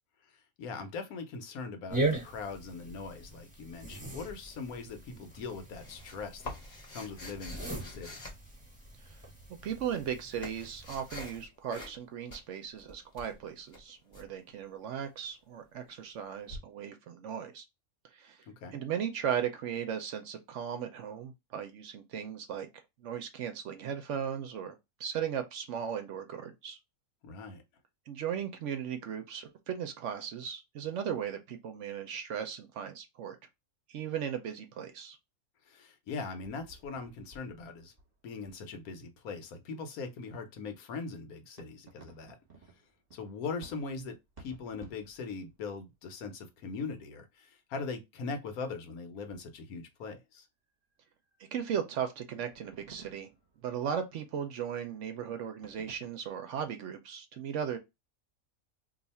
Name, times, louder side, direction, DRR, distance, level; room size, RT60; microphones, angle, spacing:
voice 1, 0.6-8.2 18.6-18.7 27.2-27.6 35.7-37.9 38.2-42.4 43.1-50.4, left 4 dB, 80° left, 1.2 m, -41 dB
sound 1, 1.9-11.5, right 2 dB, 5° right, 1.2 m, -39 dB
sound 2, 5.3-9.1 9.9-11.4 11.7-12.0 12.3-14.3 16.5-16.6, left 2 dB, 35° left, 0.8 m, -46 dB
voice 2, 9.6-17.6 18.1-18.4 18.7-22.7 23.0-26.8 28.1-33.4 33.9-35.2 51.5-53.3 53.6-57.8, right 8 dB, 65° right, 0.8 m, -37 dB
sound 3, 36.3-38.7 39.4-39.5 40.3-40.7 41.6-45.9 49.2-49.6 50.0-50.1 50.8-50.9 51.2-51.5 52.3-54.2 54.5-54.8 55.6-56.1, right 4 dB, 30° right, 1.0 m, -56 dB
2.7 x 2.4 x 4.1 m
omnidirectional pair, 1.5 m